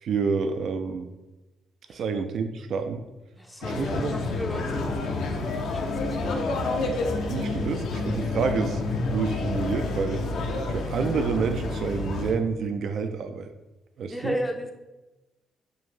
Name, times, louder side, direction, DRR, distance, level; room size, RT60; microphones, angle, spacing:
voice 1, 0.0-1.1 1.9-3.0 3.6-4.1 7.3-10.2 10.7-13.5 14.0-14.3, right 5 dB, 65° right, 8 dB, 0.3 m, -28 dB
voice 2, 3.4-6.5 14.1-14.7, equal, 5° left, 2 dB, 0.4 m, -35 dB
sound 1, 3.6-12.3, left 3 dB, 75° left, 0.6 m, -29 dB
5.3 x 2.5 x 3.2 m, 1.1 s
cardioid pair, 90°, 0 cm